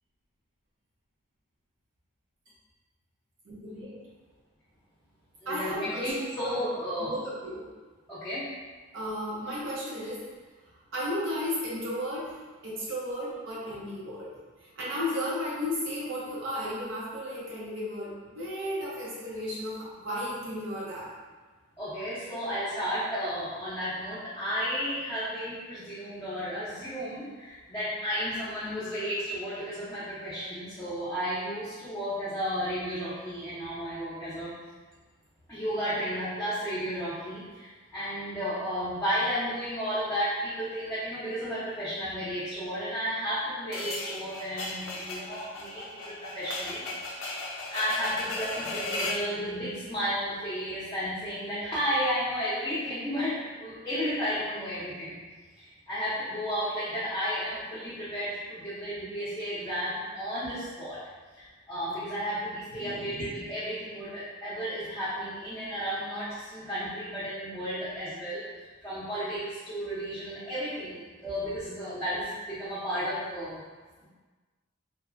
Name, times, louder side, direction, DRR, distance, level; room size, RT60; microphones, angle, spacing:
voice 1, 3.5-4.0 5.5-6.6 7.0-7.7 8.9-10.2 10.9-14.3 14.6-21.1 62.8-63.3, equal, 70° right, -7 dB, 0.7 m, -34 dB
voice 2, 5.4-7.1 8.1-8.5 21.8-34.5 35.5-46.8 47.7-55.2 55.6-61.0 61.3-68.4 68.8-73.6, equal, 15° left, -12 dB, 0.6 m, -33 dB
sound 1, 43.7-49.3, left 2 dB, 90° left, 0.4 m, -36 dB
3.1 x 2.0 x 2.4 m, 1.3 s
head